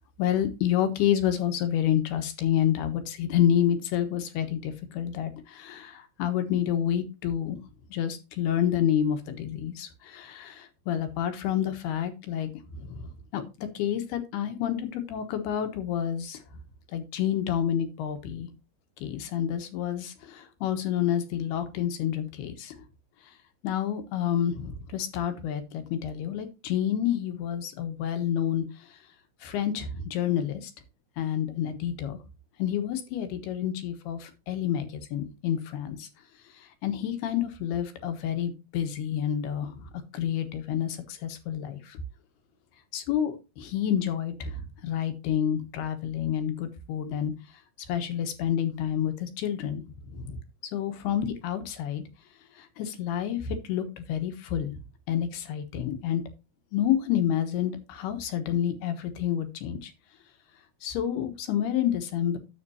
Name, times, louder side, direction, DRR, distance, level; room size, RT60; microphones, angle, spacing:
voice 1, 0.2-7.6 7.9-12.5 12.8-16.4 16.9-18.5 19.0-22.7 23.6-28.7 29.4-30.7 31.2-32.2 32.6-36.1 36.6-42.0 42.9-47.3 47.9-50.4 50.7-52.0 52.6-54.8 55.1-56.2 56.7-59.9 60.8-62.4, left 10 dB, 75° left, 8 dB, 3.2 m, -29 dB
10.0 x 8.0 x 2.8 m, 0.27 s
omnidirectional pair, 4.7 m